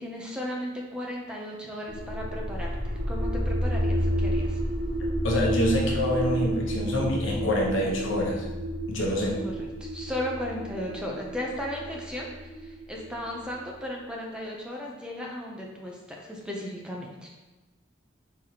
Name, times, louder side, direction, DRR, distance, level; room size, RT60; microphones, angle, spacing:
voice 1, 0.0-4.6 9.2-17.4, left 1 dB, 5° right, -2 dB, 0.6 m, -36 dB
sound 1, 1.9-13.7, equal, 65° right, 0.9 m, -30 dB
voice 2, 5.2-8.4 8.9-9.4, left 1 dB, 75° left, -2 dB, 1.0 m, -26 dB
4.6 x 4.0 x 2.9 m, 1.1 s
head